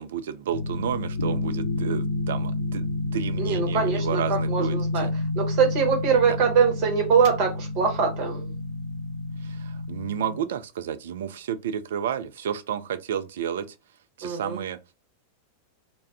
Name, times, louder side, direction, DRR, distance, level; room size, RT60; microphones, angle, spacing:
voice 1, 0.0-2.9 3.1-5.1 6.3-6.4 9.4-13.8 14.2-14.8, right 9 dB, 60° right, 0.3 m, -31 dB
sound 1, 0.5-10.4, left 2 dB, 75° left, 0.6 m, -29 dB
voice 2, 3.4-5.1 5.3-8.5 14.2-14.6, right 6 dB, 45° right, 0.9 m, -23 dB
2.3 x 2.0 x 3.3 m
figure-of-eight pair, 90°, 0 cm